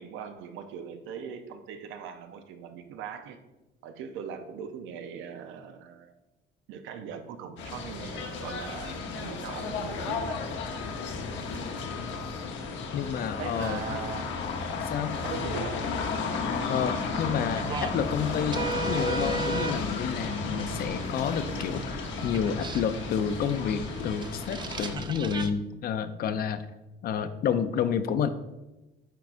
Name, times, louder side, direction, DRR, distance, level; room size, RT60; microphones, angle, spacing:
voice 1, 0.0-3.4 3.8-6.1 6.7-10.4 13.4-14.4 15.2-15.8, right 7 dB, 90° right, 8 dB, 0.7 m, -40 dB
sound 1, 7.6-25.0, left 4 dB, 75° left, 1.0 m, -33 dB
voice 2, 12.9-14.0 14.8-15.2 16.7-26.6 27.0-28.3, left 7 dB, 50° left, 11 dB, 0.5 m, -30 dB
sound 2, 17.2-25.5, right 4 dB, 25° right, 0.4 m, -37 dB
9.2 x 4.7 x 2.5 m, 1.0 s
cardioid pair, 140°, 19 cm